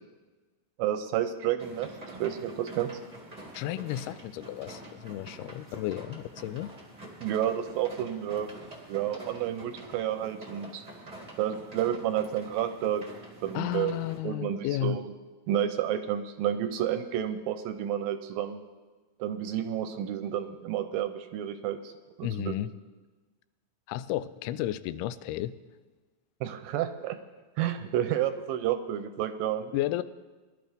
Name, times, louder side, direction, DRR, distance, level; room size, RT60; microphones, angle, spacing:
voice 1, 0.8-1.9 2.2-2.9 7.2-8.5 8.9-10.8 11.4-13.0 13.4-14.0 14.2-15.1 15.5-18.6 19.2-21.9 22.2-22.6 26.4-27.2 27.6-29.7, right 10 dB, 80° right, 9 dB, 2.2 m, -30 dB
sound 1, 1.6-14.2, right 1 dB, 25° right, 0.8 m, -46 dB
voice 2, 3.5-6.7 13.5-15.0 22.2-22.7 23.9-25.6 29.7-30.0, left 14 dB, 90° left, 15 dB, 2.5 m, -33 dB
21.5 x 12.0 x 3.5 m, 1.3 s
omnidirectional pair, 4.4 m